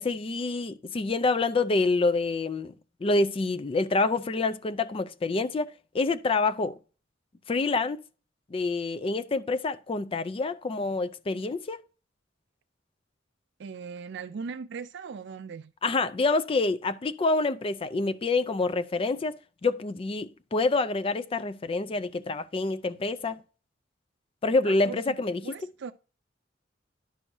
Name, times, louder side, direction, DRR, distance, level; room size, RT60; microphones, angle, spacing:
voice 1, 0.0-2.7 3.0-6.8 7.5-8.0 8.5-11.8 15.8-19.4 19.6-23.4 24.4-25.4, left 3 dB, 30° left, 0.4 m, -27 dB
voice 2, 13.6-15.7 24.6-25.2 25.4-25.9, right 5 dB, 65° right, 0.4 m, -39 dB
11.0 x 6.2 x 2.7 m
head